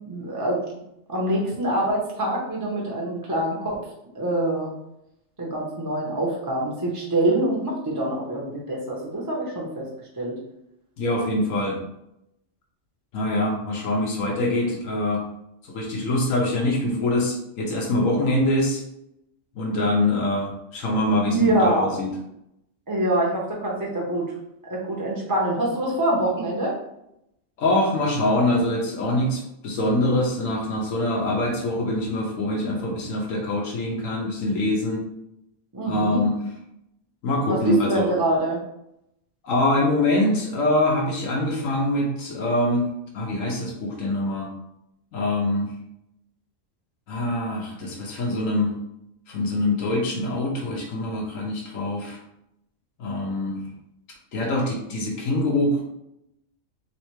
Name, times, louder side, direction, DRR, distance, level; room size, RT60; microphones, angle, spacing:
voice 1, 0.1-0.6 1.1-3.8 4.1-4.7 5.4-9.9 10.2-10.4 21.2-22.0 22.9-24.3 24.6-26.8 35.7-36.2 37.5-38.6, right 1 dB, 20° right, -4 dB, 0.6 m, -25 dB
voice 2, 11.0-11.8 13.1-15.2 15.6-18.8 19.6-22.1 27.6-35.0 35.8-36.3 37.2-38.1 39.4-42.9 43.1-44.5 45.1-45.7 47.1-48.7 49.3-52.2 53.0-53.6 54.3-55.8, left 1 dB, 80° left, -1 dB, 1.1 m, -24 dB
3.2 x 3.2 x 3.1 m, 0.81 s
omnidirectional pair, 1.4 m